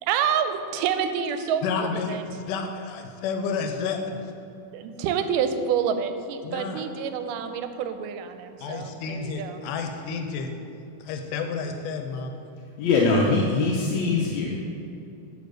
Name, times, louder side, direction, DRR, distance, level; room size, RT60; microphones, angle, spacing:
voice 1, 0.0-2.2 4.7-9.6, right 7 dB, 90° right, 8 dB, 2.2 m, -28 dB
voice 2, 1.6-2.2 2.5-4.3 6.4-6.8 8.6-10.5 11.0-12.4, left 5 dB, 90° left, 5 dB, 2.2 m, -30 dB
voice 3, 12.8-14.6, left 3 dB, 70° left, -3 dB, 1.9 m, -22 dB
11.0 x 4.5 x 6.4 m, 2.7 s
omnidirectional pair, 3.7 m